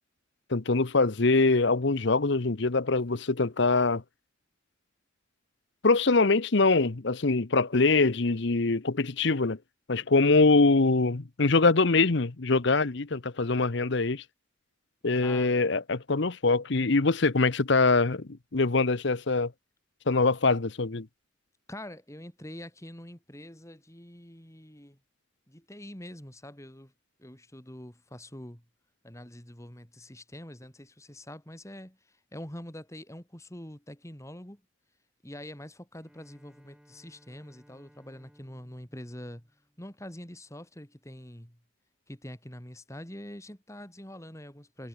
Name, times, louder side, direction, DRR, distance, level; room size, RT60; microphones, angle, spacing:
voice 1, 0.5-4.0 5.8-9.6 9.9-14.2 15.0-19.5 20.1-21.1, left 3 dB, 60° left, 0.9 m, -24 dB
voice 2, 15.2-15.6 21.7-25.0 25.5-26.9 27.2-28.6 29.0-34.6 35.2-39.5 39.8-41.6 42.1-44.9, left 1 dB, 15° left, 3.9 m, -45 dB
Bowed string instrument, 36.0-40.3, equal, 5° right, 6.5 m, -61 dB
head